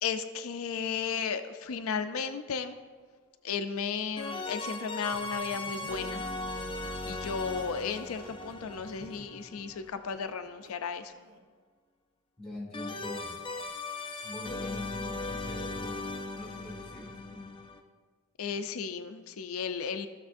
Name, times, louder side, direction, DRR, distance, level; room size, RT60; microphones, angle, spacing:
voice 1, 0.0-2.8 3.4-6.2 7.1-11.1 18.4-20.1, left 6 dB, 85° left, 8 dB, 0.5 m, -34 dB
sound 1, 1.7-1.8 4.2-10.2 12.7-17.8, left 2 dB, 25° left, 0.5 m, -38 dB
Laughter, 5.0-10.7 11.1-11.5, right 2 dB, 80° right, 0.9 m, -55 dB
voice 2, 12.4-13.3 14.2-17.5, left 1 dB, 5° left, -4 dB, 2.3 m, -43 dB
15.0 x 6.9 x 2.6 m, 1.5 s
head